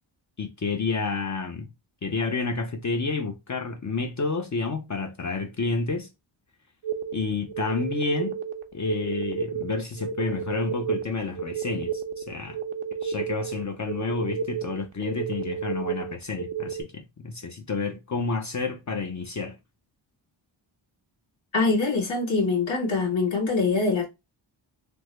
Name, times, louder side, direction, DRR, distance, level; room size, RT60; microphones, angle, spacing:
voice 1, 0.4-1.7 2.0-6.1 7.1-8.4 8.7-12.6 13.0-19.6, left 4 dB, 35° left, 0.6 m, -30 dB
sound 1, 6.8-16.8, right 7 dB, 80° right, 0.6 m, -32 dB
voice 2, 21.5-24.1, left 4 dB, 65° left, 1.7 m, -24 dB
3.4 x 2.0 x 3.1 m
cardioid pair, 65°, 48 cm